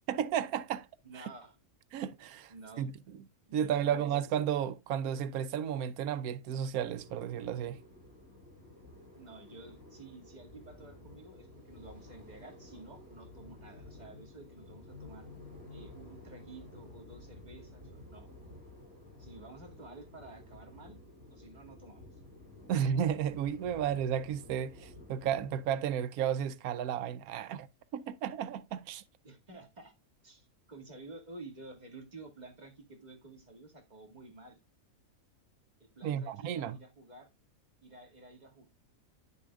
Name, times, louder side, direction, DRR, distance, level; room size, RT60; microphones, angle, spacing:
voice 1, 0.1-0.9 1.2-1.3 1.9-2.9 3.5-7.8 22.7-27.7 27.9-29.0 36.0-36.8, right 9 dB, 90° right, 1.1 m, -33 dB
voice 2, 1.0-1.6 2.5-2.9 3.4-4.1 9.2-15.3 15.7-18.3 19.2-21.0 21.3-22.2 29.2-29.9 30.2-34.6 35.8-37.3 37.8-38.7, right 2 dB, 30° right, 2.2 m, -51 dB
sound 1, 6.7-25.7, left 2 dB, 45° left, 6.7 m, -52 dB
10.5 x 6.9 x 2.3 m
omnidirectional pair, 1.5 m